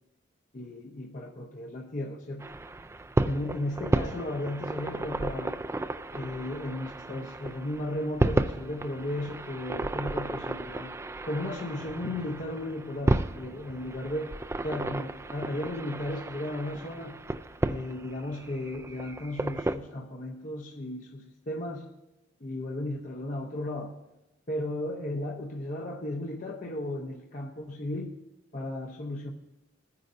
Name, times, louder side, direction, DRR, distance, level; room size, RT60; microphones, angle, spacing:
voice 1, 0.5-2.5 3.2-5.6 6.1-10.9 11.2-14.3 14.6-17.2 17.7-21.9 22.4-24.0 24.5-28.1 28.5-29.3, left 1 dB, 45° left, 0 dB, 0.8 m, -35 dB
sound 1, 2.4-19.8, right 2 dB, 15° right, 0.3 m, -33 dB
20.0 x 9.6 x 2.6 m, 0.97 s
head